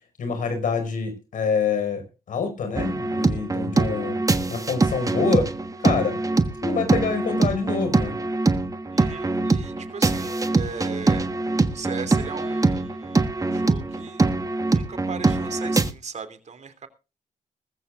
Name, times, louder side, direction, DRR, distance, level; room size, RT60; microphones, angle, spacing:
voice 1, 0.2-4.2 4.5-5.5 5.8-6.2 6.6-8.2, left 5 dB, 75° left, 7 dB, 5.1 m, -26 dB
sound 1, 2.8-15.9, right 3 dB, 25° right, 1.4 m, -23 dB
voice 2, 8.9-11.2 11.7-14.2 14.7-16.9, right 6 dB, 55° right, 10 dB, 3.0 m, -37 dB
20.0 x 14.5 x 2.5 m, 0.31 s
cardioid pair, 70°, 14 cm